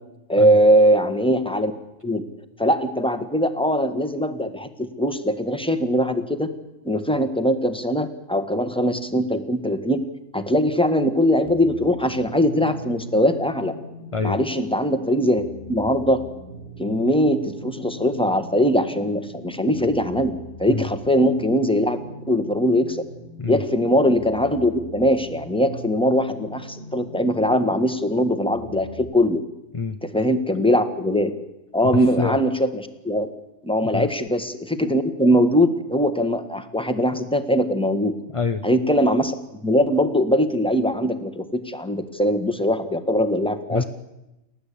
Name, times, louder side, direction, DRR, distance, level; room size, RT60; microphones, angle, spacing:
voice 1, 0.3-1.7 2.0-2.2 2.6-6.5 6.8-10.0 10.3-13.7 14.2-15.4 15.7-16.2 16.8-22.0 22.3-23.0 23.5-29.4 30.0-31.3 31.7-33.3 33.6-38.1 38.6-39.3 39.6-43.8, equal, 5° left, 9 dB, 1.5 m, -21 dB
sound 1, 11.4-29.1, equal, 55° left, 7.8 m, -40 dB
voice 2, 31.9-32.4 33.8-34.1 38.3-38.7 43.7-43.8, left 4 dB, 30° left, 8 dB, 0.6 m, -26 dB
29.5 x 12.5 x 8.6 m, 0.96 s
omnidirectional pair, 1.4 m